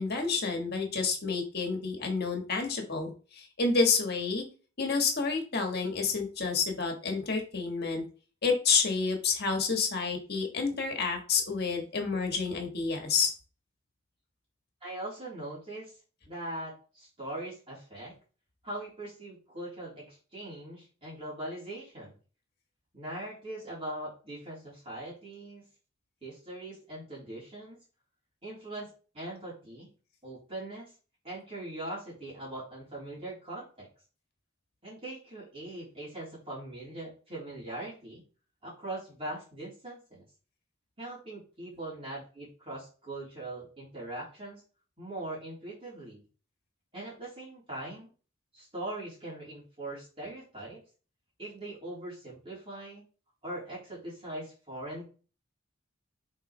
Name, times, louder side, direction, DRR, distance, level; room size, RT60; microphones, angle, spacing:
voice 1, 0.0-4.4 4.8-8.0 8.4-13.3, left 4 dB, 55° left, 3 dB, 1.6 m, -29 dB
voice 2, 14.8-16.0 16.3-18.1 18.6-22.2 22.9-25.6 26.2-27.8 28.4-29.9 30.2-30.9 31.2-33.9 34.8-38.2 38.6-40.2 41.0-44.6 45.0-46.2 46.9-48.1 48.5-50.8 51.4-53.0 53.4-55.1, right 1 dB, 30° right, -8 dB, 4.0 m, -41 dB
7.4 x 4.8 x 3.3 m, 0.36 s
head